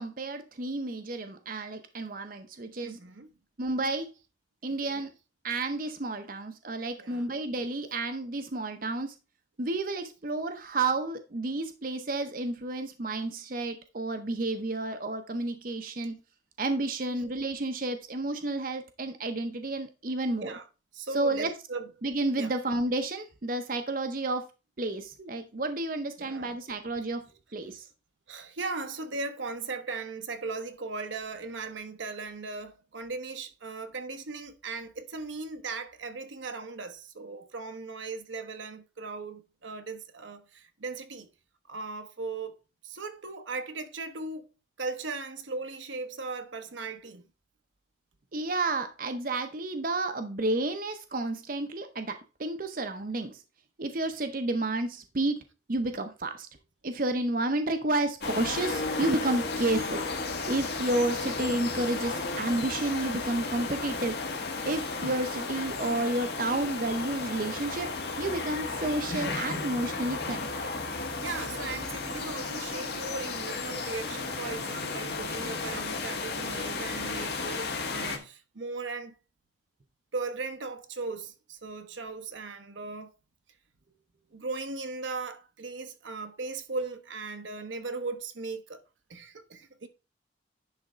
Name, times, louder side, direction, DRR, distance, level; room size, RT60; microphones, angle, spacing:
voice 1, 0.0-3.0 3.6-4.1 4.6-5.1 5.4-9.1 9.6-16.2 16.6-20.5 21.1-21.5 22.0-24.4 24.8-27.2 27.5-27.9 48.3-53.4 53.8-55.4 55.7-56.5 56.8-60.0 60.4-64.1 64.6-67.9 68.2-70.7, right 2 dB, 45° right, 0.7 m, -31 dB
voice 2, 2.8-3.3 4.8-5.1 7.0-7.3 17.1-17.3 20.4-20.7 20.9-21.9 22.3-22.5 26.2-26.5 28.3-41.3 41.7-42.5 42.8-44.5 44.8-47.2 71.2-79.1 80.1-83.1 84.3-88.8 89.1-89.9, right 3 dB, 85° right, 1.1 m, -38 dB
sound 1, 58.2-78.2, left 3 dB, 55° left, 1.4 m, -34 dB
10.5 x 3.6 x 5.0 m
head